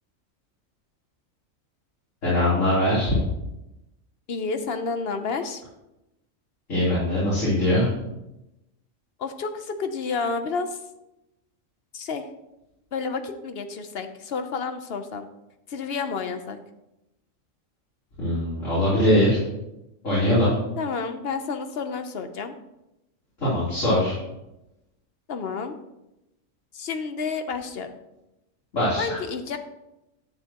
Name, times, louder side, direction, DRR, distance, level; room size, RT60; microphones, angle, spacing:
voice 1, 2.2-3.2 6.7-7.9 18.2-19.4 20.0-20.5 23.4-24.1 28.7-29.2, left 1 dB, 70° left, -11 dB, 4.1 m, -21 dB
voice 2, 4.3-5.6 9.2-10.8 11.9-12.3 12.9-15.3 15.7-16.6 20.8-22.5 25.3-25.8 26.7-27.9 29.0-29.6, left 5 dB, 55° left, 8 dB, 1.0 m, -30 dB
11.0 x 9.5 x 3.0 m, 0.92 s
omnidirectional pair, 1.4 m